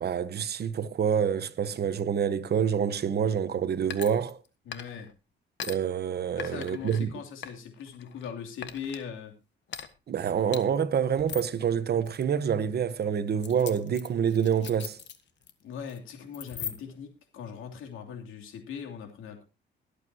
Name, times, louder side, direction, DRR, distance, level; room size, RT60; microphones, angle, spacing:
voice 1, 0.0-4.4 5.6-7.1 10.1-15.0, right 8 dB, 55° right, 1.2 m, -27 dB
sound 1, 3.9-4.5 4.7-5.1 5.6-5.8 6.4-7.0 7.4-8.3 8.6-9.0 9.7-9.9 10.5-10.6 11.2-11.5 12.0-12.2 13.4-15.5 15.8-16.0 16.3-17.0, left 8 dB, 65° left, 1.4 m, -39 dB
voice 2, 4.6-5.1 6.4-9.3 15.6-19.4, left 7 dB, 85° left, 3.0 m, -40 dB
22.0 x 8.4 x 2.9 m
cardioid pair, 90°, 20 cm